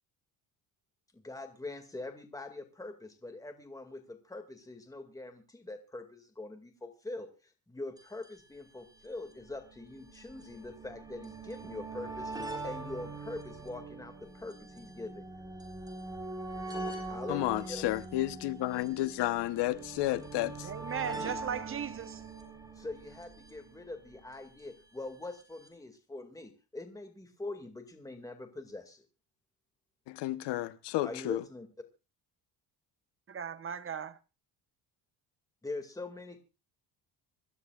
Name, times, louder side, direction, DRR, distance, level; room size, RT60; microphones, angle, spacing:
voice 1, 1.1-15.3 17.0-17.9 22.8-29.0 31.0-31.7 35.6-36.4, left 2 dB, 10° left, 2.2 m, -43 dB
sound 1, 8.0-8.1 8.2-8.3 9.2-24.4 25.4-25.5 25.7-25.8, right 2 dB, 10° right, 4.6 m, -43 dB
voice 2, 17.3-20.7 30.1-31.4, left 16 dB, 85° left, 1.1 m, -32 dB
voice 3, 20.6-22.2 33.3-34.2, right 8 dB, 30° right, 1.0 m, -37 dB
26.0 x 13.5 x 2.4 m
cardioid pair, 115°, 40 cm